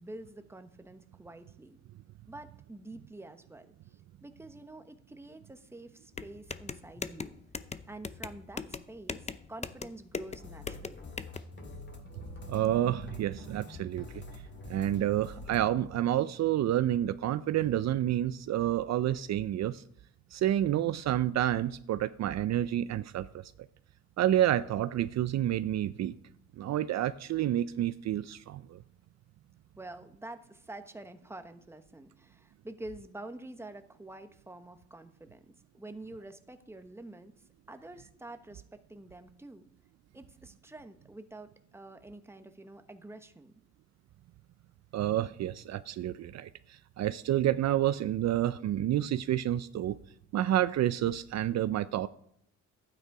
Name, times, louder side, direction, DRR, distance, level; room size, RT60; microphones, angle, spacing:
voice 1, 0.0-1.8 2.3-7.4 7.9-11.1 29.7-37.3 37.7-39.7 40.1-43.5, right 2 dB, 10° right, 1.1 m, -47 dB
sound 1, 6.1-11.4, left 5 dB, 20° left, 0.6 m, -40 dB
sound 2, 10.2-15.7, left 3 dB, 35° left, 2.1 m, -47 dB
voice 2, 12.5-14.2 14.7-19.8 20.3-23.3 24.2-26.2 26.6-28.8 44.9-50.0 50.3-52.1, right 12 dB, 60° right, 0.5 m, -29 dB
12.0 x 9.2 x 4.8 m
cardioid pair, 90°, 30 cm